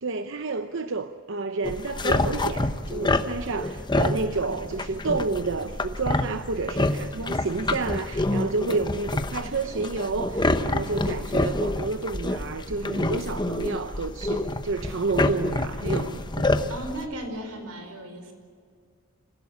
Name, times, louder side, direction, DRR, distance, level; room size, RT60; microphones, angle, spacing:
voice 1, 0.0-16.5, right 3 dB, 55° right, 8 dB, 0.8 m, -30 dB
sound 1, 1.6-17.0, left 2 dB, 20° left, 0.9 m, -27 dB
voice 2, 16.7-18.3, right 1 dB, 85° right, 6 dB, 5.0 m, -36 dB
26.5 x 16.0 x 8.4 m, 2.1 s
head